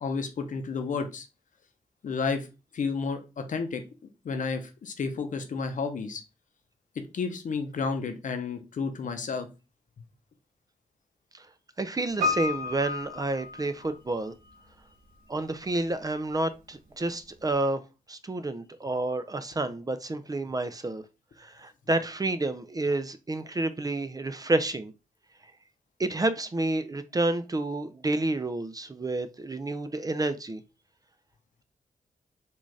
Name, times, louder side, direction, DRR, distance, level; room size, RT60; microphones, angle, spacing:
voice 1, 0.0-1.3 2.0-2.5 2.7-3.8 4.2-6.2 7.1-9.5, left 5 dB, 65° left, 0.7 m, -31 dB
voice 2, 11.8-14.3 15.3-17.8 18.1-21.0 21.4-24.9 26.0-30.6, right 2 dB, 25° right, 0.5 m, -29 dB
Piano, 12.2-14.3 14.5-14.6, left 3 dB, 85° right, 1.1 m, -31 dB
3.7 x 2.5 x 3.2 m
cardioid pair, 50°, 14 cm